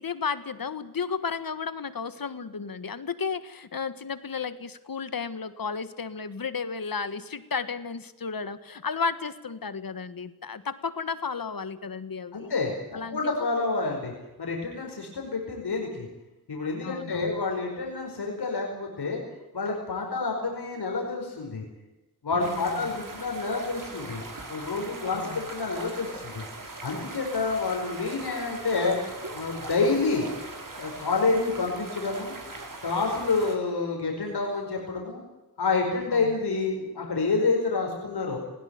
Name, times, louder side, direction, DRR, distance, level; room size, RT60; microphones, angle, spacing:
voice 1, 0.0-12.5 12.9-13.5 16.8-17.4 22.3-22.8 25.1-25.4 36.1-36.3, left 5 dB, 60° left, 13 dB, 1.6 m, -33 dB
voice 2, 12.3-12.7 13.1-14.1 14.4-16.1 16.5-19.2 19.5-21.6 22.2-24.2 24.5-26.4 26.8-29.0 29.3-30.3 30.7-32.3 32.8-35.2 35.6-38.4, left 3 dB, 85° left, 0 dB, 5.2 m, -28 dB
sound 1, 22.4-33.5, right 2 dB, 55° right, 4.6 m, -40 dB
20.0 x 17.0 x 9.6 m, 1.0 s
cardioid pair, 55°, 38 cm